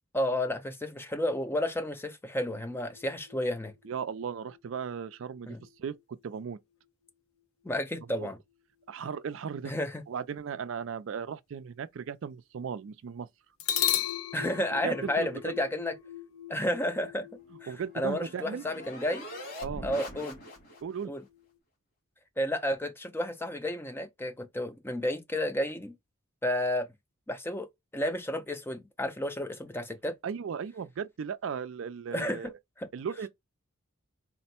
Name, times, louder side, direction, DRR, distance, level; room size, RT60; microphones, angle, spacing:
voice 1, 0.1-3.7 5.5-5.6 7.6-8.4 9.6-10.0 14.3-15.9 16.5-17.3 17.6-17.7 17.9-19.3 19.8-20.4 21.1-21.2 22.4-25.9 26.4-26.9 27.3-27.7 27.9-30.2 32.1-32.5 32.8-32.9, left 1 dB, 10° left, 0.5 m, -31 dB
sound 1, 2.5-6.0 13.6-21.5, left 10 dB, 80° left, 0.7 m, -38 dB
voice 2, 3.8-5.9 6.2-6.6 8.1-8.3 8.9-9.7 10.1-13.3 14.8-15.5 17.7-18.6 19.6-19.8 20.8-21.1 30.2-32.5 32.9-33.3, right 7 dB, 60° right, 0.4 m, -36 dB
sound 2, 17.4-21.0, left 1 dB, 55° left, 2.1 m, -43 dB
4.2 x 2.1 x 4.2 m
head